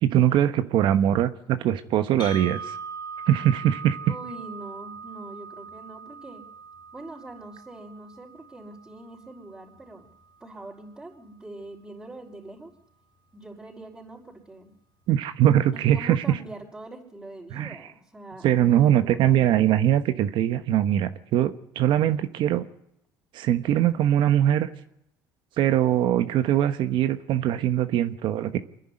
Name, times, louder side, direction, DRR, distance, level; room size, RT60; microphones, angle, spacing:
voice 1, 0.0-2.8 3.3-4.0 15.1-16.2 17.5-17.8 18.4-22.7 23.3-24.7 25.6-28.6, right 11 dB, 65° right, 10 dB, 1.2 m, -22 dB
sound 1, 2.2-10.2, right 4 dB, 65° left, 3.8 m, -41 dB
voice 2, 4.0-6.4 6.9-10.1 10.4-12.7 13.3-14.7 15.7-19.4, right 2 dB, 15° right, -6 dB, 5.2 m, -43 dB
25.5 x 11.0 x 9.9 m, 0.77 s
supercardioid pair, 95°, 9 cm